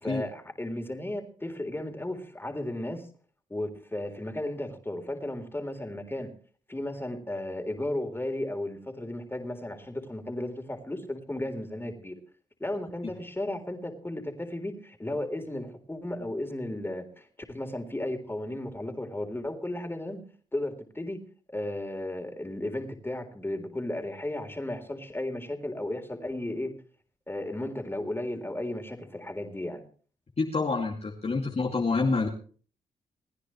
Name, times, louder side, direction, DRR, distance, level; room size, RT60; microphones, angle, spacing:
voice 1, 0.0-3.1 3.5-6.3 6.7-12.2 12.6-20.2 20.5-21.2 21.5-26.7 27.3-29.8, left 1 dB, 15° left, 5 dB, 3.9 m, -34 dB
voice 2, 30.4-32.3, left 3 dB, 45° left, 0 dB, 2.5 m, -27 dB
29.0 x 9.9 x 3.2 m, 0.42 s
supercardioid pair, 50°, 15 cm